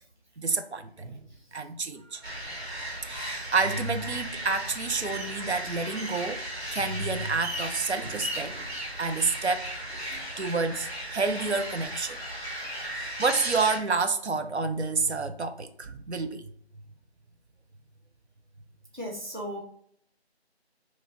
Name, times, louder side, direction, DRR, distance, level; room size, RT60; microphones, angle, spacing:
voice 1, 0.4-1.2 1.5-2.2 3.0-6.4 6.7-8.7 9.0-12.2 12.9-16.5, right 4 dB, 90° right, 0.6 m, -29 dB
sound 1, 2.2-13.8, right 1 dB, 70° right, 1.4 m, -36 dB
voice 2, 18.9-19.6, equal, 45° right, 0.7 m, -36 dB
3.1 x 2.3 x 3.9 m
figure-of-eight pair, 180°, 33 cm